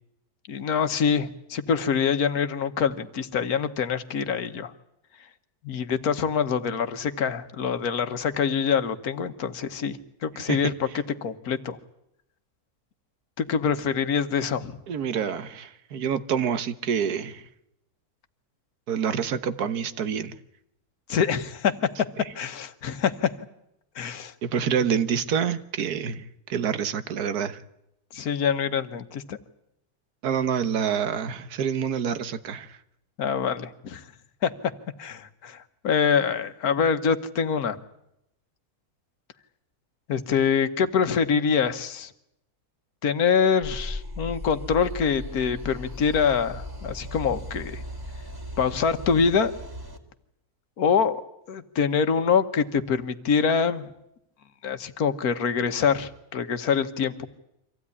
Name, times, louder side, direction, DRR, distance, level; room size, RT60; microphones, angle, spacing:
voice 1, 0.5-4.7 5.6-10.9 11.2-11.8 13.4-14.8 21.1-21.7 22.3-23.3 23.9-24.3 28.1-29.4 33.2-34.0 34.4-34.5 35.0-37.8 40.1-42.1 43.0-47.8 48.6-49.5 50.8-51.2 51.5-53.9 54.6-57.3, left 6 dB, 80° left, 1.6 m, -25 dB
voice 2, 14.9-17.4 18.9-20.4 24.4-27.6 30.2-32.8, right 7 dB, 90° right, 1.6 m, -27 dB
sound 1, 43.6-50.0, left 1 dB, 15° right, 2.2 m, -37 dB
25.0 x 16.0 x 9.7 m
omnidirectional pair, 1.6 m